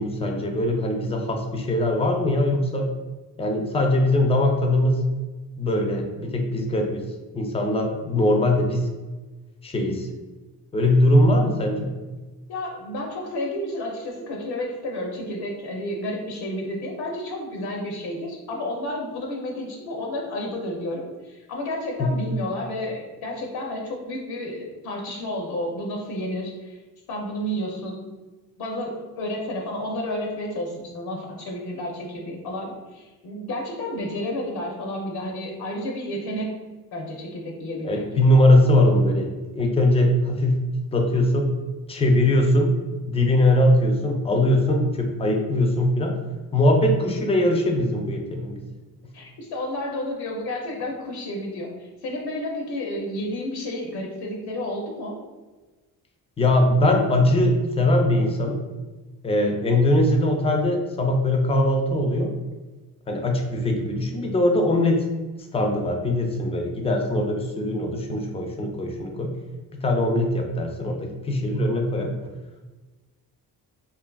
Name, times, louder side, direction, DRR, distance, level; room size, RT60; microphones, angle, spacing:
voice 1, 0.0-2.9 3.4-5.0 5.6-7.0 7.3-8.9 9.6-10.1 10.7-11.9 22.0-22.1 37.8-40.7 40.9-41.5 41.9-42.7 43.1-46.2 46.5-48.6 56.4-58.6 59.2-62.3 63.1-65.0 65.5-69.3 69.7-72.1, left 1 dB, 15° left, 2 dB, 0.4 m, -21 dB
voice 2, 12.5-26.8 27.1-28.1 28.6-36.5 36.9-38.0 49.1-55.2, left 1 dB, 75° left, 0 dB, 0.6 m, -31 dB
2.7 x 2.5 x 2.2 m, 1.2 s
cardioid pair, 90°, 38 cm